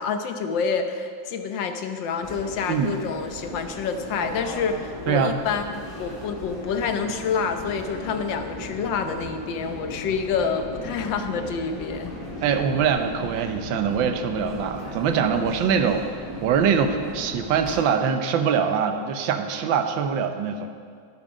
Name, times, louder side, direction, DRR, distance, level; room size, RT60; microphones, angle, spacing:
voice 1, 0.0-12.1, left 5 dB, 75° left, 7 dB, 1.5 m, -28 dB
sound 1, 2.2-17.8, equal, 30° left, 1.9 m, -37 dB
voice 2, 12.4-16.1 16.4-20.7, right 7 dB, 80° right, 7 dB, 1.5 m, -23 dB
11.0 x 10.5 x 5.2 m, 2.2 s
omnidirectional pair, 2.1 m